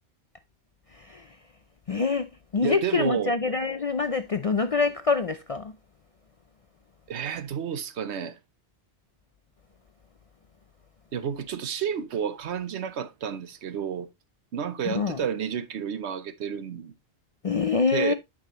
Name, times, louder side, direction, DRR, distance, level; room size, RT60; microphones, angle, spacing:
voice 1, 0.9-1.3 1.9-5.7 14.9-15.2 17.4-18.1, left 4 dB, 45° left, 0.4 m, -25 dB
voice 2, 2.6-3.4 7.1-8.3 11.1-14.1 14.5-16.9 17.9-18.1, right 8 dB, 75° right, 1.1 m, -30 dB
9.3 x 5.5 x 2.9 m
omnidirectional pair, 1.1 m